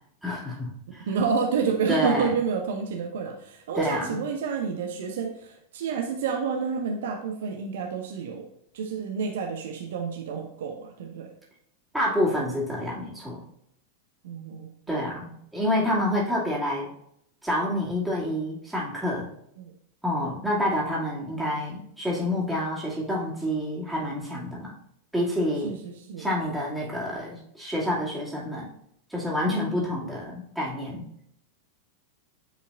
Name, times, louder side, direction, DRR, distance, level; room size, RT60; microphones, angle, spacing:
voice 1, 0.2-1.1 1.9-2.3 3.7-4.2 11.9-13.4 14.9-16.9 17.4-19.3 20.0-24.8 25.1-25.7 26.2-28.7 29.1-31.0, left 1 dB, ahead, -6 dB, 2.4 m, -28 dB
voice 2, 1.0-8.5 8.7-11.3 14.2-15.0 19.6-19.7 25.6-26.3 29.7-29.8, right 5 dB, 60° right, 3 dB, 0.7 m, -29 dB
8.9 x 5.0 x 2.6 m, 0.72 s
figure-of-eight pair, 90°, 0 cm